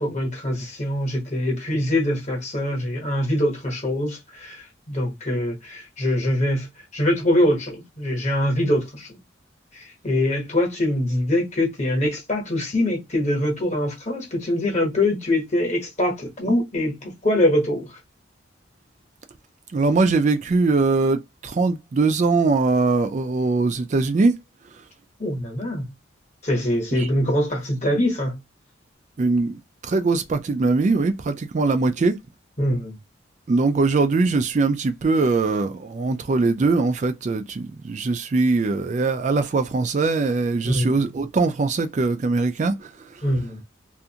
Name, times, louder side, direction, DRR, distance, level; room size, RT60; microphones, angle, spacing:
voice 1, 0.0-6.7 6.9-9.2 9.7-18.0 25.2-25.9 26.4-28.4 32.6-33.0 40.6-41.0 43.2-43.6, left 1 dB, 35° left, 1.0 m, -23 dB
voice 2, 19.7-24.3 27.0-27.1 29.2-32.2 33.5-43.2, right 3 dB, 35° right, 0.3 m, -21 dB
2.5 x 2.4 x 2.7 m
head